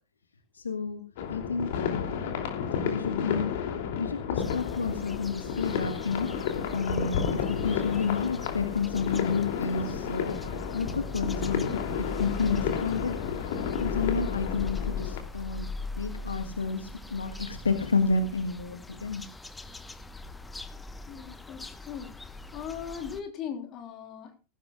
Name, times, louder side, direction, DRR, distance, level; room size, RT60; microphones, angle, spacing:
voice 1, 0.6-1.0 1.3-2.1 2.8-3.5 4.0-6.3 6.7-10.3 10.7-11.7 12.0-13.5 13.8-15.6 16.0-19.2, left 4 dB, 75° left, 7 dB, 1.6 m, -30 dB
sound 1, 1.2-15.2, left 7 dB, 50° left, 3.0 m, -32 dB
sound 2, 4.4-23.2, left 3 dB, 10° left, 1.1 m, -40 dB
voice 2, 21.1-22.1 22.5-24.3, left 8 dB, 35° left, 4 dB, 3.9 m, -39 dB
18.0 x 16.0 x 2.4 m, 0.31 s
figure-of-eight pair, 90°, 0 cm